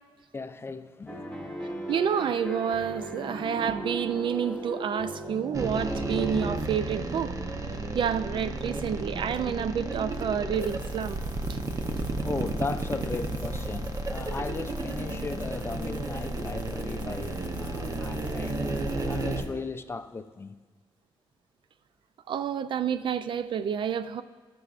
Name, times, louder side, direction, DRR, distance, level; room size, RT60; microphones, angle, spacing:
voice 1, 0.3-1.3 12.2-18.6 19.0-20.6, left 4 dB, 25° left, 0.4 m, -36 dB
sound 1, 1.1-6.6, right 1 dB, 10° left, 1.3 m, -36 dB
voice 2, 1.9-7.3 7.9-11.2 11.5-11.6 22.3-24.2, right 8 dB, 60° right, 0.4 m, -29 dB
sound 2, 5.5-19.4, right 2 dB, 35° right, 0.8 m, -33 dB
sound 3, 10.5-19.5, equal, 20° right, 1.2 m, -42 dB
16.5 x 6.1 x 2.5 m
cardioid pair, 85°, 9 cm